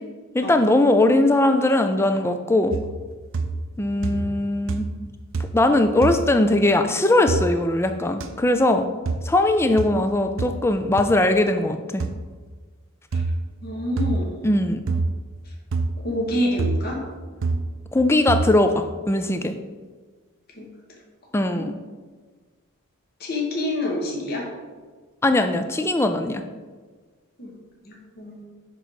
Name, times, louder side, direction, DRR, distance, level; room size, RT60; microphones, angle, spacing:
voice 1, 0.3-2.7 3.8-4.9 5.5-8.8 9.2-12.0 14.4-14.8 17.9-19.5 21.3-21.7 25.2-26.4, left 1 dB, 10° left, 7 dB, 0.3 m, -20 dB
sound 1, 2.7-3.1 3.3-3.8 4.0-4.4 4.7-5.0 5.3-5.7 6.0-6.2 7.3-7.4 8.2-8.3 9.0-9.3 9.8-9.9 10.4-10.6 11.0-11.1 12.0-12.2 13.1-13.3 14.0-14.3 14.9-15.1 15.7-15.9 16.6-16.9 17.4-17.6 18.3-18.5, right 3 dB, 60° right, 0.5 m, -26 dB
voice 2, 13.6-14.3 16.0-17.0 21.6-21.7 23.2-24.4 27.4-27.5 28.2-28.4, left 1 dB, 45° left, -2 dB, 1.1 m, -26 dB
6.1 x 3.9 x 4.8 m, 1.4 s
head